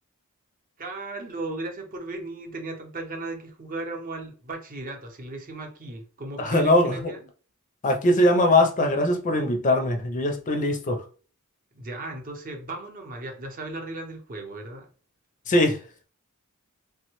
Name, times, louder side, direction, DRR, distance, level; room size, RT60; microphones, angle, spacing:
voice 1, 0.8-7.2 11.7-14.9, right 2 dB, 40° right, 0.7 m, -36 dB
voice 2, 6.4-7.0 7.8-11.0 15.5-15.8, left 1 dB, 35° left, 0.4 m, -21 dB
3.2 x 2.1 x 3.0 m
head